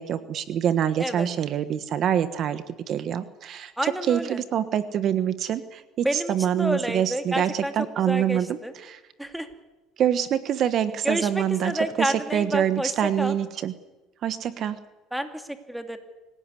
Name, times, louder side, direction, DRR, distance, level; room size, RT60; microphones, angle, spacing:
voice 1, 0.0-3.7 4.1-9.0 10.0-13.7 14.2-14.8, right 9 dB, 50° right, 12 dB, 1.3 m, -25 dB
voice 2, 3.8-4.4 6.0-7.7 8.1-8.7 9.2-9.5 11.0-13.4 15.1-16.0, right 1 dB, 5° right, 7 dB, 2.4 m, -29 dB
25.5 x 17.0 x 9.8 m, 1.1 s
cardioid pair, 120°, 0 cm